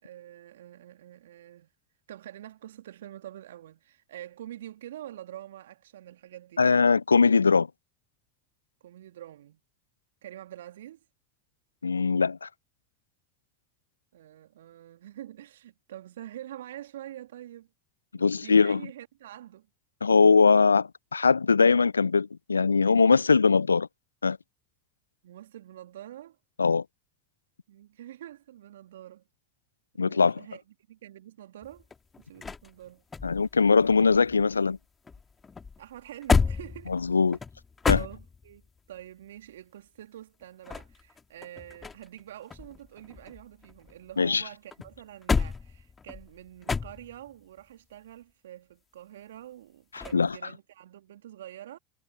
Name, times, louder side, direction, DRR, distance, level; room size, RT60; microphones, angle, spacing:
voice 1, 0.0-1.7 2.1-6.6 8.8-9.6 10.2-11.0 14.1-17.7 18.2-19.7 25.2-26.4 27.7-29.2 30.1-30.6 30.9-31.9 32.2-33.0 35.8-37.0 37.9-51.8, right 12 dB, 75° right, 2.3 m, -46 dB
voice 2, 6.6-7.7 11.8-12.5 18.2-18.8 20.0-23.9 24.2-24.4 26.6-26.8 30.0-30.4 33.2-34.8 36.9-37.4 37.9-38.0 44.2-44.4 49.9-50.4, left 5 dB, 85° left, 0.4 m, -21 dB
sound 1, 31.6-34.8 35.1-38.7 40.4-42.2 42.5-44.3 44.7-47.3 50.0-50.3, left 5 dB, 25° left, 2.6 m, -31 dB
figure-of-eight pair, 70°, 0 cm